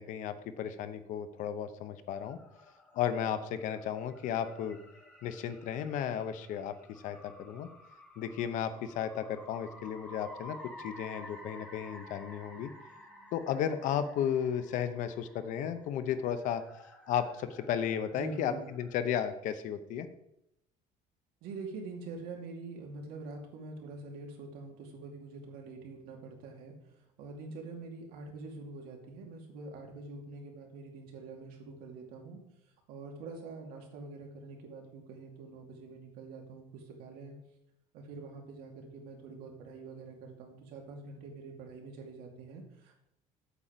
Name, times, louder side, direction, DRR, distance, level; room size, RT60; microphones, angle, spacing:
voice 1, 0.0-2.4 2.9-4.8 5.2-7.7 8.2-12.7 13.3-16.6 17.1-20.1, left 9 dB, 55° left, 11 dB, 0.8 m, -34 dB
sound 1, 2.1-18.9, left 1 dB, 10° left, 2.7 m, -53 dB
voice 2, 18.1-18.7 21.4-32.4 32.9-37.3 37.9-42.9, right 3 dB, 70° right, 1 dB, 2.3 m, -45 dB
8.3 x 7.7 x 5.1 m, 0.79 s
cardioid pair, 175°, 16 cm